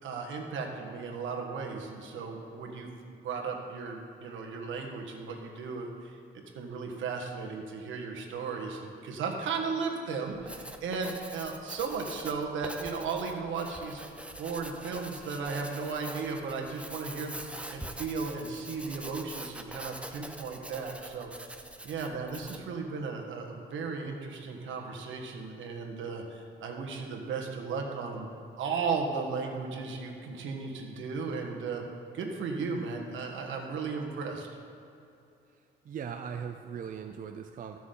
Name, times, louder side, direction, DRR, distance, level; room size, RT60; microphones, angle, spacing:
voice 1, 0.0-6.2 6.5-14.0 14.4-17.4 17.7-28.3 28.6-31.8 32.1-34.5, right 4 dB, 75° right, 1 dB, 1.5 m, -35 dB
Writing, 10.3-22.7, right 1 dB, 5° right, 0.7 m, -44 dB
voice 2, 35.8-37.8, right 7 dB, 45° right, 5 dB, 0.5 m, -39 dB
14.5 x 6.0 x 3.8 m, 2.7 s
cardioid pair, 90°, 20 cm